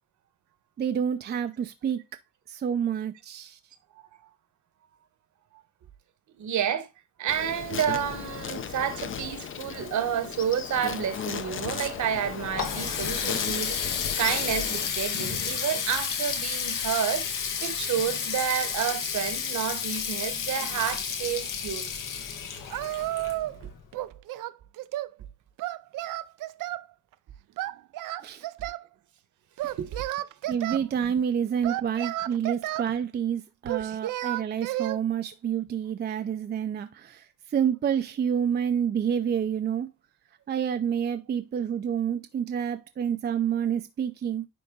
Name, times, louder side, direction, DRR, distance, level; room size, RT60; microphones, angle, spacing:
voice 1, 0.8-2.0 2.5-3.6 28.2-28.5 30.5-39.9 40.5-44.5, right 8 dB, 30° right, 0.5 m, -28 dB
voice 2, 6.4-6.9 7.2-13.8 14.2-21.9 23.6-23.7 29.6-30.0, right 9 dB, 65° right, 1.2 m, -30 dB
Insect, 7.3-14.9, left 8 dB, 40° left, 0.7 m, -36 dB
Water tap faucet, 12.2-23.8, left 7 dB, 80° left, 1.7 m, -31 dB
Singing, 22.7-23.6 23.9-25.1 25.6-26.9 27.6-28.9 29.6-30.8 31.6-32.9 33.7-35.0, right 15 dB, 80° right, 0.5 m, -32 dB
9.9 x 3.8 x 3.7 m
cardioid pair, 150°, 32 cm